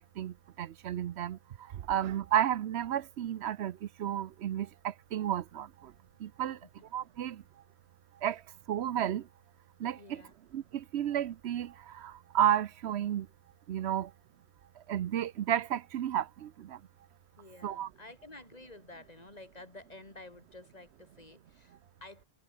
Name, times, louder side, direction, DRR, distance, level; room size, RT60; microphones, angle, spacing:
voice 1, 0.2-1.4 1.9-5.9 6.2-6.6 6.9-7.4 8.2-8.4 8.7-9.2 9.8-10.2 10.5-13.3 13.7-14.1 14.9-16.8 17.6-17.9, right 10 dB, 80° right, 0.9 m, -32 dB
voice 2, 9.9-10.3 17.4-22.3, left 2 dB, 40° left, 2.7 m, -51 dB
omnidirectional pair, 1.1 m